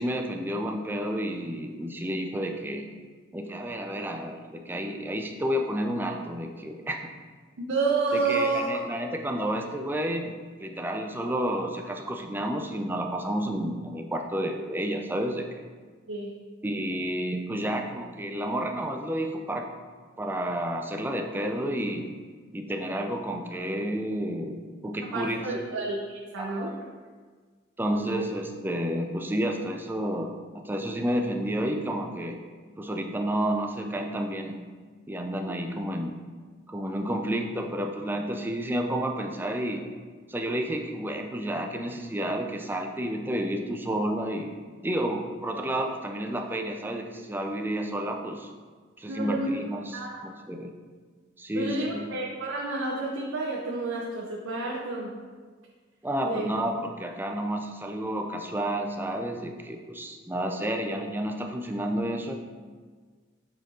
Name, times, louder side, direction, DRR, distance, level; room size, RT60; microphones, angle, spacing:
voice 1, 0.0-2.9 3.3-7.1 8.1-15.5 16.6-19.7 20.2-22.1 22.5-25.8 26.4-26.8 27.8-32.4 32.8-34.6 35.1-36.2 36.7-39.9 40.3-44.6 44.8-48.5 49.0-50.7 51.4-52.1 56.0-62.3, right 1 dB, 10° right, 3 dB, 0.5 m, -30 dB
voice 2, 7.6-8.7 16.1-16.4 25.1-26.7 27.9-28.2 49.1-49.6 49.9-50.2 51.5-55.1 56.2-56.4, right 3 dB, 85° right, -3 dB, 0.8 m, -30 dB
7.8 x 4.4 x 3.8 m, 1.5 s
head